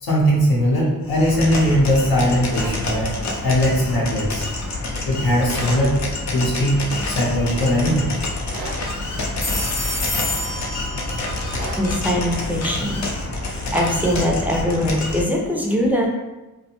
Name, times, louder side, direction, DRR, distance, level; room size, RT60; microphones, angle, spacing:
voice 1, 0.0-3.1 3.4-4.5 5.1-6.0 6.3-8.1, equal, 80° left, -4 dB, 0.8 m, -19 dB
sound 1, 1.0-15.2, left 2 dB, 50° left, 0.5 m, -27 dB
sound 2, 2.5-2.8 5.5-5.9 8.5-8.8 11.5-11.8, right 2 dB, 90° right, 0.6 m, -34 dB
sound 3, 6.7-7.0 7.3-7.4 9.2-12.3, left 2 dB, 30° left, 0.8 m, -29 dB
voice 2, 11.8-13.1 13.7-16.1, equal, 5° right, -1 dB, 0.3 m, -21 dB
2.5 x 2.1 x 2.8 m, 1.1 s
wide cardioid pair, 115°, 36 cm